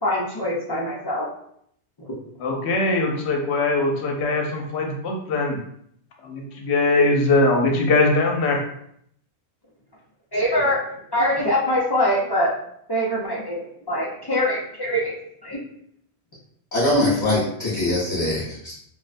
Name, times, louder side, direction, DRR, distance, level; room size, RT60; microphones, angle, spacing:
voice 1, 0.0-1.3 10.3-10.8 11.1-12.5 12.9-13.6 13.9-15.1 15.4-15.6, equal, 35° left, -6 dB, 0.4 m, -23 dB
voice 2, 2.4-5.6 6.2-8.6, left 2 dB, 75° left, 1 dB, 0.8 m, -21 dB
voice 3, 16.7-18.7, left 1 dB, 20° left, -12 dB, 0.9 m, -22 dB
2.4 x 2.1 x 2.5 m, 0.69 s
omnidirectional pair, 1.1 m